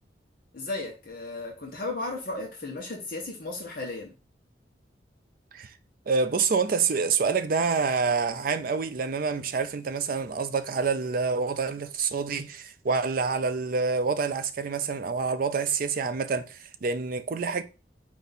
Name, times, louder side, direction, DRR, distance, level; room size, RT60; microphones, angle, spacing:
voice 1, 0.5-4.1, left 2 dB, 50° left, 0.9 m, -35 dB
voice 2, 6.1-17.6, right 5 dB, 50° right, 0.4 m, -27 dB
4.5 x 2.7 x 4.0 m
head